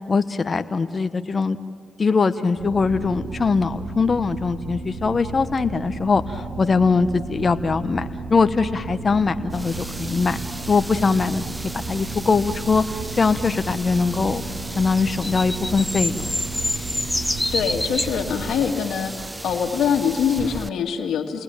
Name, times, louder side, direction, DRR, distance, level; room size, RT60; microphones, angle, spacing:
voice 1, 0.1-1.6 2.0-10.4 10.7-11.4 11.7-14.4 14.7-16.3, left 4 dB, 45° left, 10 dB, 1.2 m, -21 dB
sound 1, 2.5-18.6, right 3 dB, 75° right, 5.2 m, -34 dB
sound 2, 9.5-20.7, right 1 dB, 15° right, 0.7 m, -36 dB
sound 3, 14.8-18.2 19.1-19.2, left 1 dB, 10° left, 1.5 m, -27 dB
voice 2, 17.5-19.1 19.4-21.4, left 7 dB, 75° left, 1 dB, 2.2 m, -23 dB
29.5 x 20.0 x 9.2 m, 2.1 s
supercardioid pair, 55°, 0 cm